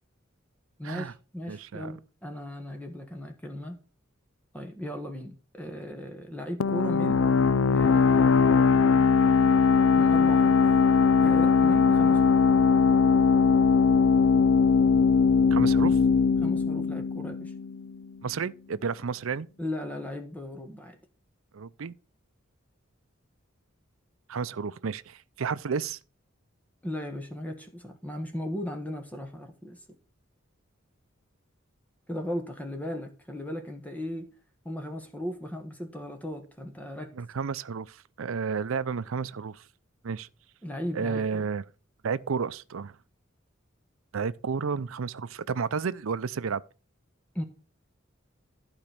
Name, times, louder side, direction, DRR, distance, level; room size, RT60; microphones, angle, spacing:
voice 1, 0.8-3.8 4.5-7.4 7.7-8.3 10.0-10.6 11.2-12.4 16.4-17.5 19.6-21.0 26.8-29.8 32.1-34.3 34.6-37.1 40.6-41.5 47.3-47.4, left 1 dB, 10° left, 1.4 m, -37 dB
voice 2, 1.5-1.9 15.5-16.0 18.2-19.5 21.5-21.9 24.3-26.0 37.2-39.6 40.0-40.3 40.9-41.6 42.0-43.0 44.1-46.6, right 5 dB, 85° right, 0.5 m, -31 dB
sound 1, 6.6-18.0, left 5 dB, 75° left, 0.5 m, -21 dB
12.0 x 5.2 x 6.0 m
head